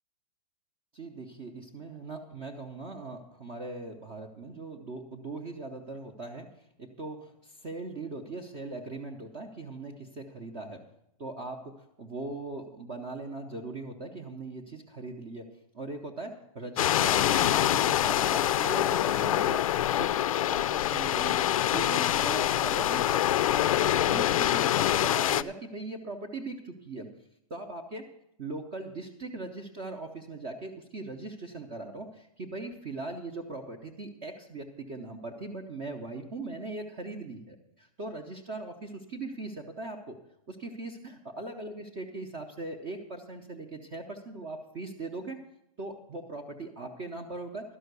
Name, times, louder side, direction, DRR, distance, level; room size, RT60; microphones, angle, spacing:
voice 1, 0.9-6.5 6.8-10.9 11.2-19.7 20.0-21.4 21.7-27.1 27.5-28.0 28.4-40.2 40.5-45.4 45.8-47.8, right 2 dB, 20° right, 2 dB, 0.6 m, -40 dB
sound 1, 16.8-25.4, left 12 dB, 75° left, 0.4 m, -25 dB
12.0 x 5.6 x 8.0 m, 0.78 s
supercardioid pair, 175°, 18 cm